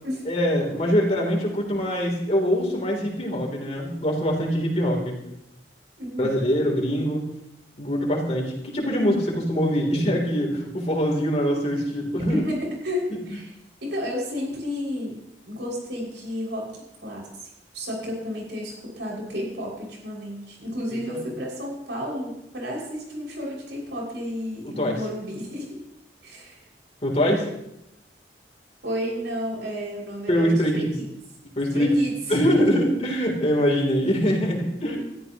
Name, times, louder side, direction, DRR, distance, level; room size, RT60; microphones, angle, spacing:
voice 1, 0.2-5.2 6.2-7.3 7.8-12.4 21.1-21.2 24.6-25.0 27.0-27.5 30.3-30.9 31.6-32.0 32.3-35.0, equal, 35° left, 0 dB, 3.4 m, -23 dB
voice 2, 6.0-6.4 12.3-13.5 13.8-15.2 15.5-16.7 17.0-17.3 17.7-25.7 26.2-26.6 28.8-31.1 31.7-32.6, equal, 80° right, -2 dB, 6.3 m, -31 dB
21.0 x 13.5 x 3.1 m, 0.83 s
head